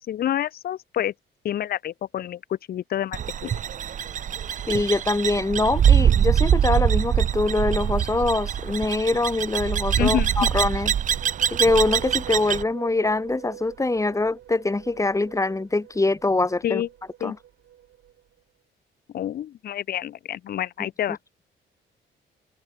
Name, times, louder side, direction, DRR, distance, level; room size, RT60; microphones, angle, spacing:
voice 1, 0.1-1.1 1.4-3.5 10.0-10.3 16.6-16.9 17.2-17.3 19.1-21.2, left 11 dB, 50° left, 0.5 m, -28 dB
sound 1, 3.1-12.6, right 9 dB, 40° right, 0.4 m, -23 dB
voice 2, 4.7-10.9 11.5-16.8 17.2-17.4, left 2 dB, 15° left, 1.5 m, -24 dB
sound 2, 10.9-18.4, right 11 dB, 75° right, 6.9 m, -44 dB
cardioid pair, 90°, 20 cm